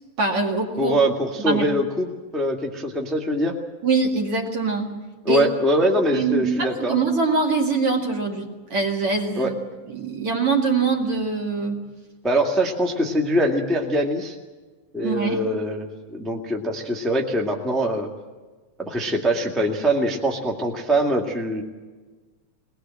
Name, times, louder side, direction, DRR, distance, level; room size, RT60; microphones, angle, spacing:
voice 1, 0.2-1.0 1.4-1.7 3.8-4.9 5.3-5.5 6.1-9.6 9.9-11.8 15.0-15.4, right 4 dB, 45° right, 2 dB, 2.6 m, -23 dB
voice 2, 0.8-3.6 5.2-7.0 9.3-9.5 12.2-14.4 14.9-18.1 18.8-21.6, right 1 dB, ahead, 0 dB, 0.8 m, -23 dB
22.0 x 20.0 x 7.7 m, 1.3 s
omnidirectional pair, 4.1 m